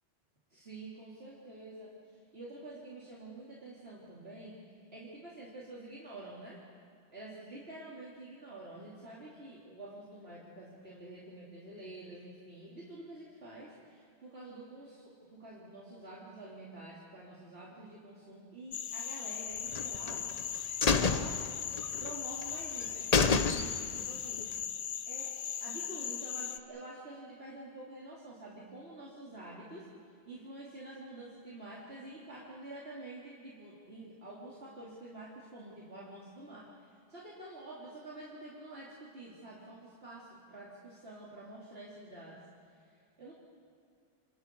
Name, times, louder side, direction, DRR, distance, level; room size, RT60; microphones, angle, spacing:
voice 1, 0.5-2.0 2.3-4.6 4.9-6.6 7.1-20.3 20.8-21.4 22.0-24.5 25.1-25.3 25.6-29.9 30.3-42.4 43.2-43.3, right 2 dB, 70° right, -7 dB, 3.6 m, -48 dB
sound 1, 18.7-26.6, left 8 dB, 90° left, 1.1 m, -38 dB
sound 2, 19.7-20.4 20.8-22.1 22.4-22.5 22.8-22.9 23.1-24.0 24.4-24.5, left 5 dB, 40° left, 0.9 m, -28 dB
29.0 x 27.5 x 4.7 m, 2.4 s
omnidirectional pair, 1.1 m